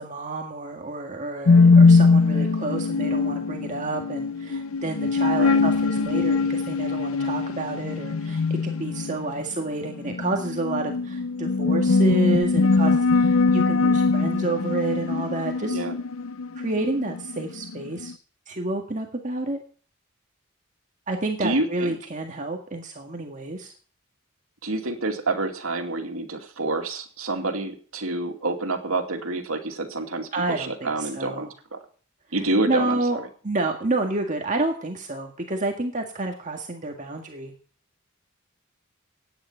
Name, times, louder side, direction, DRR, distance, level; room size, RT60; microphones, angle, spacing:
voice 1, 0.0-15.8 16.5-18.1 18.5-19.6 21.1-23.7 30.3-31.5 32.6-37.5, right 2 dB, 35° right, 2 dB, 1.8 m, -29 dB
sound 1, 1.5-18.1, left 4 dB, 80° left, 0.6 m, -21 dB
voice 2, 21.4-22.0 24.6-31.8 32.3-33.3, right 2 dB, 85° right, 3 dB, 2.5 m, -28 dB
17.0 x 9.7 x 5.6 m, 0.43 s
head